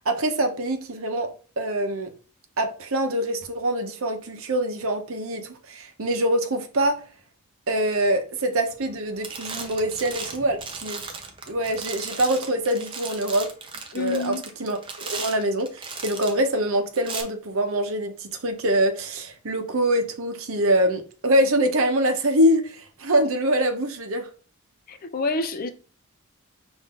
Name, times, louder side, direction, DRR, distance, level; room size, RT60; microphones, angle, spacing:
voice 1, 0.1-1.3 1.6-2.1 2.6-7.0 7.7-11.0 11.5-13.5 13.9-14.3 14.6-24.3, right 1 dB, 65° right, 0.8 m, -24 dB
sound 1, 8.7-9.0 9.2-16.5 17.0-17.2, right 4 dB, 25° right, 0.6 m, -36 dB
voice 2, 13.9-14.4 24.9-25.7, left 3 dB, 40° left, 0.5 m, -28 dB
5.4 x 2.6 x 3.6 m
head